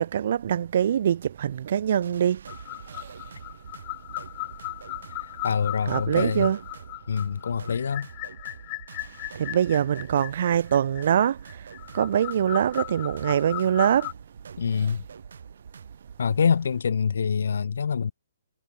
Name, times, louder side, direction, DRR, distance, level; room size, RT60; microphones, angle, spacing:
voice 1, 0.0-2.4 2.9-3.1 5.9-6.6 9.3-11.6 11.9-14.1, right 9 dB, 45° right, 1.1 m, -23 dB
sound 1, 2.0-16.2, right 6 dB, 65° right, 2.9 m, -46 dB
sound 2, 2.5-14.1, left 28 dB, 25° left, 1.4 m, -37 dB
voice 2, 5.2-6.5 7.1-8.1 14.6-15.0 16.2-18.1, left 6 dB, 70° left, 2.1 m, -25 dB
hypercardioid pair, 170°, 0 cm